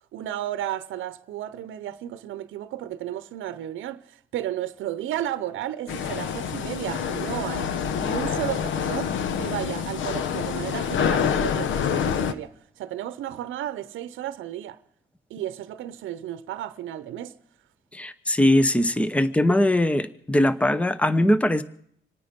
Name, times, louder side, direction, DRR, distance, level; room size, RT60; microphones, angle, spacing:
voice 1, 0.1-9.1 9.4-14.8 15.3-17.3, right 12 dB, 80° right, 0.8 m, -33 dB
sound 1, 5.9-12.3, left 7 dB, 75° left, 1.0 m, -27 dB
voice 2, 17.9-21.6, left 1 dB, 5° left, 0.9 m, -21 dB
26.5 x 9.4 x 5.2 m
cardioid pair, 90°, 20 cm